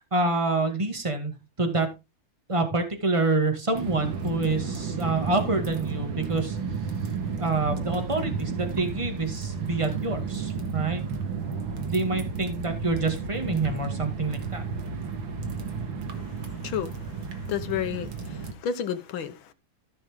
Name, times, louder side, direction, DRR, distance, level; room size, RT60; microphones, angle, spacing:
voice 1, 0.1-1.9 2.5-6.6 7.4-11.0 11.9-14.6, right 3 dB, 15° right, 1.9 m, -27 dB
sound 1, 3.7-18.5, right 5 dB, 65° right, 2.3 m, -32 dB
voice 2, 16.6-17.0 17.5-19.5, left 8 dB, 70° left, 1.7 m, -31 dB
14.0 x 5.9 x 3.6 m
omnidirectional pair, 2.4 m